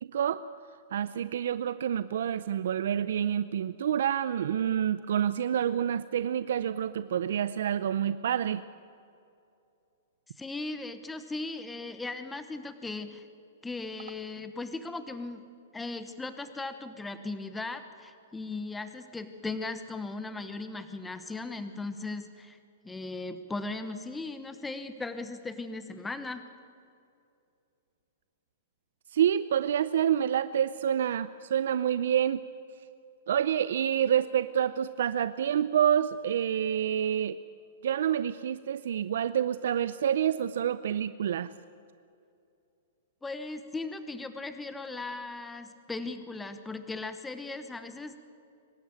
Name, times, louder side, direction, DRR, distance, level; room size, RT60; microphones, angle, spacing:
voice 1, 0.0-0.4 0.9-8.6 29.1-32.4 33.3-37.4 37.8-41.5, right 9 dB, 75° right, 14 dB, 0.5 m, -28 dB
voice 2, 10.4-13.3 13.6-15.4 15.7-22.6 22.8-26.4 43.2-48.2, left 3 dB, 10° left, 10 dB, 1.0 m, -38 dB
24.0 x 13.0 x 9.2 m, 2.5 s
hypercardioid pair, 150°, 0 cm